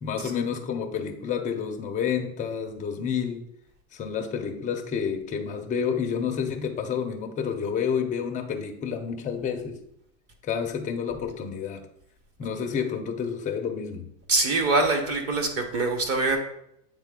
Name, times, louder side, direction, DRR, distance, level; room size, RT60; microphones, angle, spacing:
voice 1, 0.0-3.4 3.9-9.8 10.4-11.9 12.4-14.1, left 7 dB, 15° left, 4 dB, 0.5 m, -29 dB
voice 2, 14.3-16.4, right 3 dB, 30° right, 4 dB, 1.0 m, -24 dB
8.2 x 3.6 x 3.6 m, 0.76 s
supercardioid pair, 125°, 49 cm